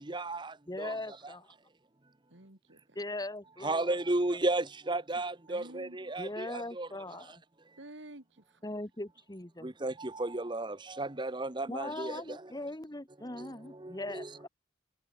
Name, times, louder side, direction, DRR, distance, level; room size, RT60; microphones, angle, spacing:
voice 1, 0.1-0.9 3.6-6.9 9.6-12.2 13.4-13.5 13.8-14.3, right 2 dB, 25° right, 1.0 m, -33 dB
voice 2, 0.7-1.5 2.9-4.0 6.2-7.3 8.6-9.7 11.7-14.5, left 2 dB, 20° left, 1.4 m, -40 dB
voice 3, 2.3-3.0 5.5-6.3 7.8-8.7, right 1 dB, 65° right, 2.9 m, -51 dB
head